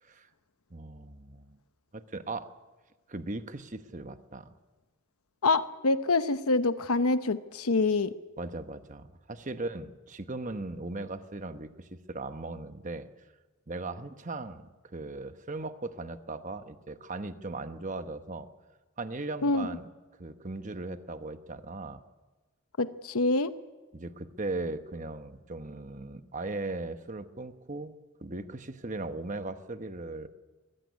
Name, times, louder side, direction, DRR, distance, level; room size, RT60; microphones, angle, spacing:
voice 1, 0.7-1.6 1.9-2.5 3.1-4.5 8.4-13.1 13.7-14.6 14.9-18.5 19.0-19.9 20.2-22.0 23.9-27.9 28.2-30.3, right 2 dB, 35° right, 9 dB, 1.0 m, -38 dB
voice 2, 5.4-8.1 19.4-19.7 22.8-23.5, left 3 dB, 90° left, 11 dB, 0.9 m, -26 dB
22.5 x 16.0 x 9.6 m, 1.2 s
head